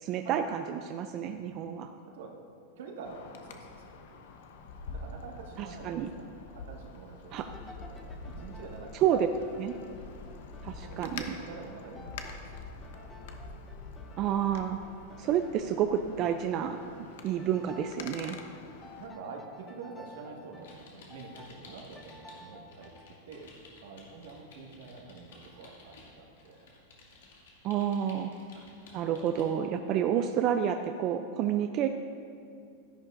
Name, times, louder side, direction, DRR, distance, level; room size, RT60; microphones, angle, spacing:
voice 1, 0.0-1.9 5.6-6.1 7.3-7.5 8.9-9.3 9.5-9.8 10.6-11.4 14.2-14.8 15.2-18.4 27.6-28.7 28.9-31.9, right 9 dB, 35° right, 6 dB, 0.4 m, -30 dB
voice 2, 1.1-1.4 2.1-2.3 2.8-4.3 4.9-6.3 6.5-9.1 10.8-13.2 19.0-22.9 23.3-23.5 23.8-26.7 28.7-29.0, right 4 dB, 75° right, 0 dB, 1.6 m, -47 dB
Wind, 3.0-19.1, left 3 dB, 65° left, 0.9 m, -46 dB
sound 1, 7.4-23.1, left 2 dB, 10° left, 0.8 m, -53 dB
sound 2, 20.6-22.4 22.7-29.5, left 3 dB, 90° left, 2.4 m, -54 dB
13.0 x 11.0 x 2.5 m, 2.4 s
supercardioid pair, 155°, 0 cm